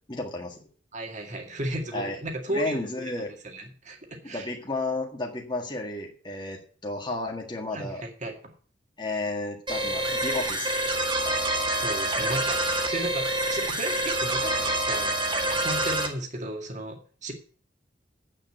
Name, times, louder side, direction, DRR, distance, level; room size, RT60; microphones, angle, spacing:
voice 1, 0.1-0.6 1.9-2.2 2.5-3.3 4.2-8.0 9.0-10.7, left 2 dB, 25° left, 0 dB, 1.7 m, -32 dB
voice 2, 0.9-3.1 3.4-4.5 7.7-8.3 11.8-15.2 15.6-17.3, right 1 dB, 40° right, 2 dB, 2.1 m, -34 dB
sound 1, 9.7-16.1, right 1 dB, 25° right, 1.8 m, -27 dB
8.6 x 6.7 x 8.0 m, 0.42 s
head